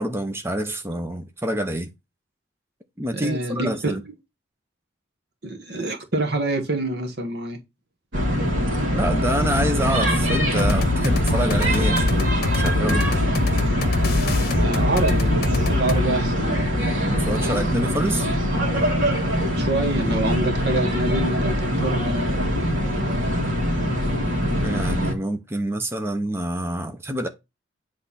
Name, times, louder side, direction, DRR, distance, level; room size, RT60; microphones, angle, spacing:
voice 1, 0.0-1.9 3.0-4.0 8.9-13.0 17.0-18.3 24.6-27.3, right 1 dB, 15° right, 0.7 m, -27 dB
voice 2, 3.2-4.0 5.4-7.6 14.6-16.7 19.6-22.5, right 2 dB, 55° right, 1.4 m, -26 dB
sound 1, 8.1-25.1, equal, 85° right, 1.9 m, -23 dB
sound 2, 10.6-16.1, left 3 dB, 50° left, 1.0 m, -24 dB
8.1 x 3.3 x 5.7 m
head